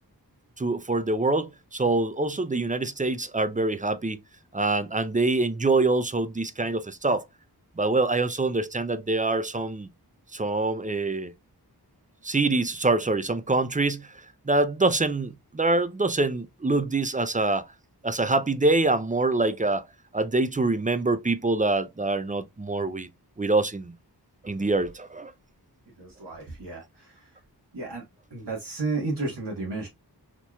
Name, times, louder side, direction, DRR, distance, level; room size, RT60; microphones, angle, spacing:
voice 1, 0.6-4.2 4.5-7.2 7.8-9.9 10.3-11.3 12.2-14.1 14.5-17.7 18.0-19.9 20.1-23.1 23.4-23.9 24.4-25.3, right 2 dB, 20° right, 0.4 m, -25 dB
voice 2, 26.0-27.3 27.7-28.0 28.3-29.9, right 3 dB, 80° right, 1.2 m, -32 dB
4.1 x 3.0 x 2.2 m
wide cardioid pair, 50°, 41 cm